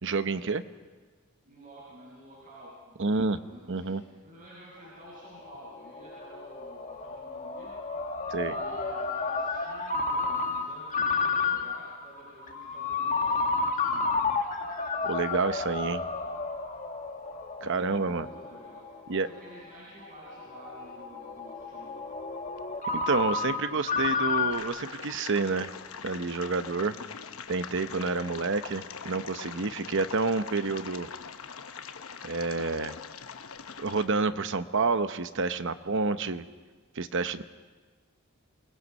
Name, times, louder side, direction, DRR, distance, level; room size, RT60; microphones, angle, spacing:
voice 1, 0.0-0.6 3.0-3.4 3.7-4.0 8.3-8.5 15.0-16.0 17.6-18.3 19.1-19.3 22.9-25.7 26.0-27.0 27.5-31.1 32.2-33.0 33.8-36.4 36.9-37.4, right 4 dB, 60° right, 11 dB, 0.9 m, -29 dB
voice 2, 1.4-7.7 8.0-8.1 8.4-14.2 17.7-22.0, right 1 dB, 40° right, -8 dB, 7.0 m, -50 dB
Ringtone, 4.8-24.6, left 4 dB, 35° left, 1.7 m, -32 dB
sound 1, 24.5-34.1, left 6 dB, 70° left, 1.0 m, -42 dB
28.0 x 20.5 x 5.5 m, 1.4 s
head